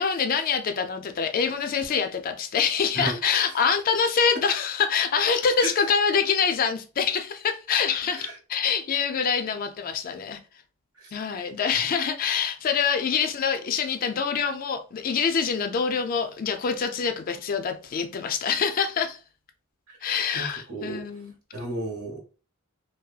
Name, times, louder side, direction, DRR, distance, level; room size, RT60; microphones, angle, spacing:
voice 1, 0.0-10.4 11.1-19.2 20.0-21.3, left 6 dB, 40° left, 0.3 m, -25 dB
voice 2, 2.9-3.5 5.6-5.7 8.1-8.3 11.0-11.1 19.9-20.0 20.3-21.0 21.5-22.2, right 2 dB, 90° right, 1.1 m, -33 dB
2.7 x 2.2 x 2.3 m
head